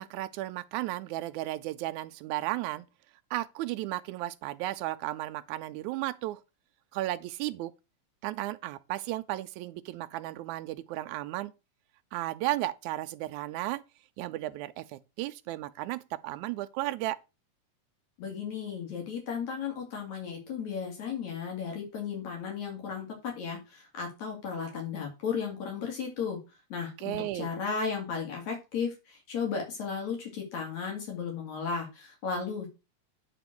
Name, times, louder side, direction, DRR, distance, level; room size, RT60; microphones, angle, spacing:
voice 1, 0.0-2.9 3.3-6.4 6.9-7.7 8.2-11.5 12.1-13.8 14.2-17.2 27.0-27.5, right 16 dB, 90° right, 2.0 m, -34 dB
voice 2, 18.2-26.4 26.7-32.7, left 6 dB, 75° left, 3.4 m, -35 dB
8.9 x 3.9 x 6.0 m
omnidirectional pair, 3.3 m